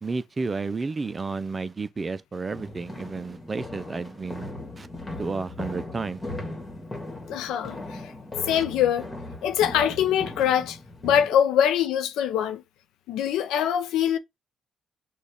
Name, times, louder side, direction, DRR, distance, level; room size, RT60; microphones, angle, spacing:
voice 1, 0.0-4.5 4.8-4.9 5.2-6.2 8.5-8.6, right 4 dB, 30° right, 0.4 m, -31 dB
sound 1, 2.5-11.3, left 2 dB, 20° left, 1.6 m, -38 dB
voice 2, 7.3-7.8 8.5-9.1 9.4-10.8 11.0-12.6 13.1-14.2, left 9 dB, 90° left, 0.5 m, -23 dB
6.3 x 2.4 x 3.5 m
cardioid pair, 90°, 0 cm